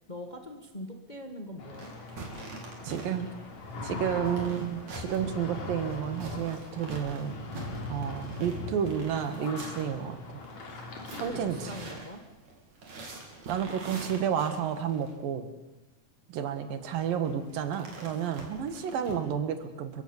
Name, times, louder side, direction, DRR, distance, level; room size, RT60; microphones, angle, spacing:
voice 1, 0.1-1.9 3.9-4.2 11.2-12.2, left 1 dB, 25° left, 4 dB, 1.0 m, -42 dB
sound 1, 1.6-12.0, left 2 dB, 55° left, 4.3 m, -41 dB
sound 2, 1.7-15.1 16.8-19.2, right 2 dB, 55° right, 4.7 m, -45 dB
voice 2, 2.8-3.3 3.8-7.3 7.9-10.2 11.2-11.7 13.5-15.5 16.3-20.0, right 8 dB, 90° right, 9 dB, 3.5 m, -31 dB
30.0 x 16.0 x 7.2 m, 1.0 s
omnidirectional pair, 3.9 m